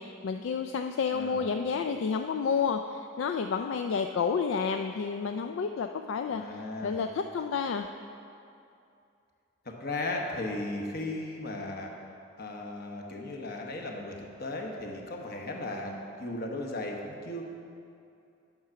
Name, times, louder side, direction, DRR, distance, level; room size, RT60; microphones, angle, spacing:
voice 1, 0.0-7.9, left 5 dB, 70° left, 6 dB, 0.3 m, -30 dB
voice 2, 1.1-1.5 6.3-6.9 9.6-11.9 12.4-17.5, left 2 dB, 50° left, 1 dB, 1.1 m, -36 dB
9.4 x 6.0 x 5.7 m, 2.6 s
head